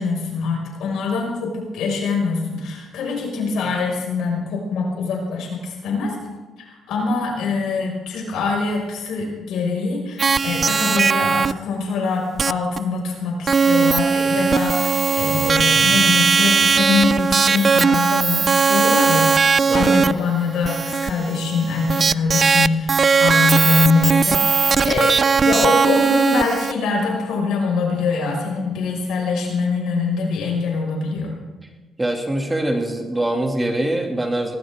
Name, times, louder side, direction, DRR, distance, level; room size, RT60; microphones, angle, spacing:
voice 1, 0.0-6.2 6.6-19.3 19.7-31.3, left 4 dB, 85° left, -1 dB, 5.7 m, -23 dB
sound 1, 10.2-11.5 12.4-12.5 12.8-12.9 13.5-26.7, right 5 dB, 40° right, 0.4 m, -18 dB
voice 2, 32.0-34.5, right 1 dB, 15° right, 2 dB, 2.6 m, -23 dB
19.0 x 19.0 x 3.7 m, 1.2 s
cardioid pair, 90°, 0 cm